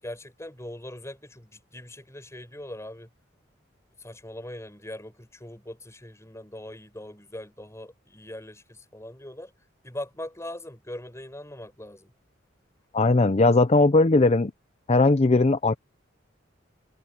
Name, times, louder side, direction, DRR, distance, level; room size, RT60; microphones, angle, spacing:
voice 1, 0.0-3.1 4.0-9.5 9.8-12.1, left 1 dB, 15° left, 5.6 m, -41 dB
voice 2, 12.9-14.5 14.9-15.8, left 2 dB, 35° left, 0.6 m, -19 dB
head